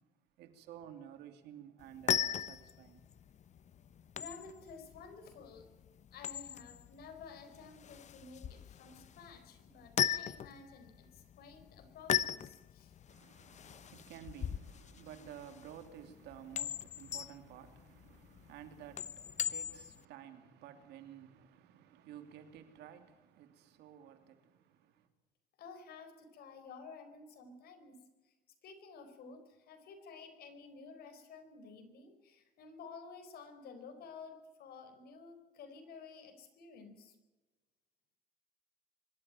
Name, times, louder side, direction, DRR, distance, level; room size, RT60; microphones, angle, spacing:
voice 1, 0.4-3.1 13.1-25.1, right 10 dB, 85° right, 2.7 m, -53 dB
sound 1, 1.8-20.0, left 10 dB, 45° left, 0.8 m, -39 dB
voice 2, 4.1-5.7 6.1-12.9 25.6-28.0 28.2-28.3 28.6-37.1, left 4 dB, 65° left, 4.4 m, -52 dB
24.5 x 12.5 x 9.0 m
cardioid pair, 110°, 17 cm